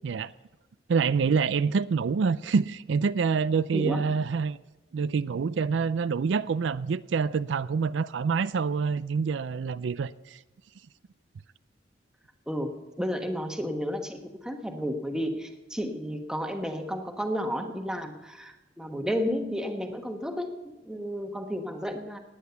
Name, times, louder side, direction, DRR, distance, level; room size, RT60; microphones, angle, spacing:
voice 1, 0.9-4.6 4.9-10.4, right 5 dB, 75° right, 0.4 m, -26 dB
voice 2, 3.7-4.0 12.5-22.2, equal, 5° right, 1.3 m, -32 dB
17.5 x 9.9 x 6.9 m
head